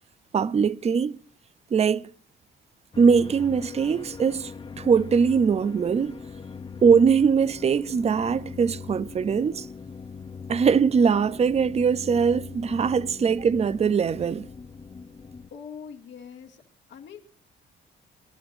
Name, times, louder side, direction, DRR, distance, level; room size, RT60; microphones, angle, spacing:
voice 1, 0.3-1.2 1.7-2.1 3.0-6.2 6.8-9.7 10.5-14.5, right 6 dB, 30° right, 0.6 m, -21 dB
sound 1, 2.9-15.5, left 5 dB, 25° left, 0.8 m, -41 dB
voice 2, 15.5-16.6 16.9-17.2, left 7 dB, 65° left, 2.2 m, -42 dB
26.5 x 11.5 x 2.6 m
cardioid pair, 90°, 20 cm